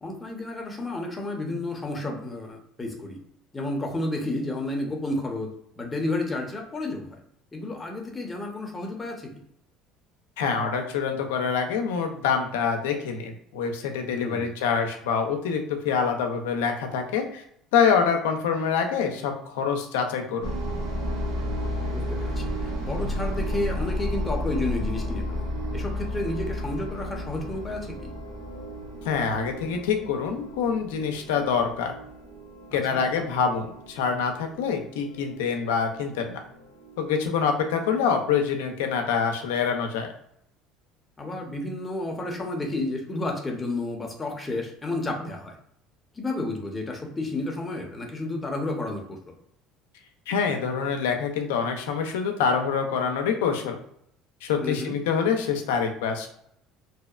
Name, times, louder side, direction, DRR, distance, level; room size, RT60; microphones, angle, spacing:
voice 1, 0.0-3.2 3.5-5.5 5.8-7.1 7.5-9.3 14.1-14.5 21.9-28.1 32.7-33.0 41.2-45.6 46.2-49.2 54.6-55.0, left 2 dB, 20° left, 2 dB, 0.7 m, -31 dB
voice 2, 10.4-17.4 17.7-20.5 29.0-31.9 32.7-36.4 37.0-40.1 50.3-53.8 54.4-56.3, left 6 dB, 90° left, 4 dB, 0.4 m, -26 dB
sound 1, 20.4-37.1, left 1 dB, 80° right, 0.7 m, -33 dB
2.7 x 2.0 x 2.3 m, 0.71 s
supercardioid pair, 100°, 0 cm